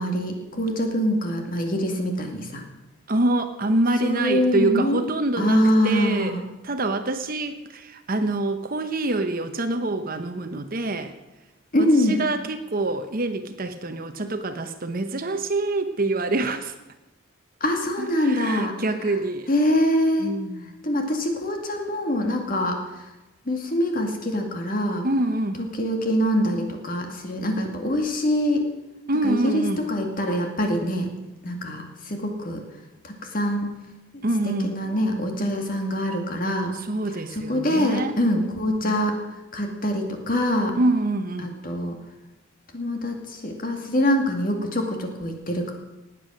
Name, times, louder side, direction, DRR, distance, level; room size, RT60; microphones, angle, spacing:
voice 1, 0.0-2.6 4.0-5.0 5.4-6.4 11.7-12.2 17.6-18.7 19.5-20.3 20.8-22.8 23.5-25.0 25.6-28.6 29.2-31.1 31.4-32.6 33.0-33.7 34.5-36.7 37.3-39.1 39.5-40.8 41.6-42.0 42.7-45.7, equal, 45° left, 3 dB, 2.2 m, -24 dB
voice 2, 3.1-6.4 6.6-11.1 11.8-16.7 18.0-19.5 20.2-20.7 25.0-25.6 29.1-29.8 34.2-34.8 36.8-38.2 38.8-39.0 40.8-41.5, right 2 dB, 45° right, 8 dB, 0.9 m, -26 dB
18.5 x 8.5 x 6.3 m, 1.0 s
head